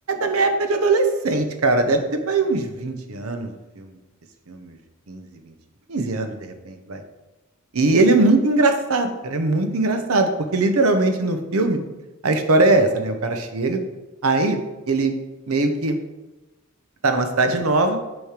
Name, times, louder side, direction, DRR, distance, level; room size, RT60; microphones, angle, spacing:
voice 1, 0.1-4.0 4.5-4.8 5.1-5.5 5.9-7.0 7.7-11.8 12.2-13.8 14.2-14.6 14.9-15.1 15.5-16.0 17.0-18.0, right 2 dB, 85° right, 7 dB, 0.8 m, -21 dB
9.4 x 3.2 x 5.0 m, 1.1 s
head